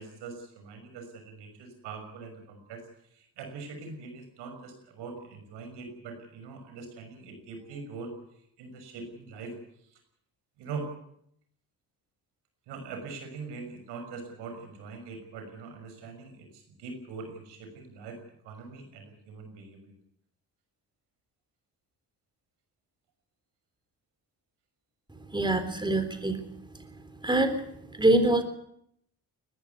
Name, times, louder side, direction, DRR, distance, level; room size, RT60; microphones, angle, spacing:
voice 1, 0.0-2.8 3.1-8.1 8.6-9.6 9.9-10.0 10.6-10.9 12.7-18.2 18.4-19.9, right 4 dB, 85° right, 5 dB, 6.2 m, -42 dB
voice 2, 25.3-26.4 27.2-27.6 27.9-28.4, right 2 dB, 10° right, 9 dB, 3.5 m, -24 dB
20.5 x 15.0 x 9.6 m, 0.73 s
supercardioid pair, 70°, 40 cm